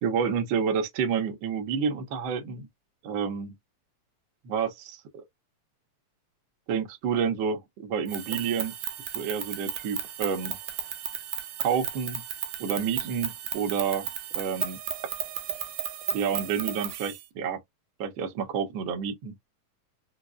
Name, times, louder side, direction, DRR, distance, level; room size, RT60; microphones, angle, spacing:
voice 1, 0.0-2.7 3.0-3.5 4.4-5.2 6.7-8.7 9.1-10.6 11.6-12.2 12.6-14.1 14.3-14.8 16.1-17.6 18.0-19.3, right 7 dB, 65° right, 1.3 m, -29 dB
sound 1, 8.1-17.2, right 10 dB, 85° right, 2.1 m, -34 dB
5.1 x 2.0 x 2.3 m
omnidirectional pair, 3.4 m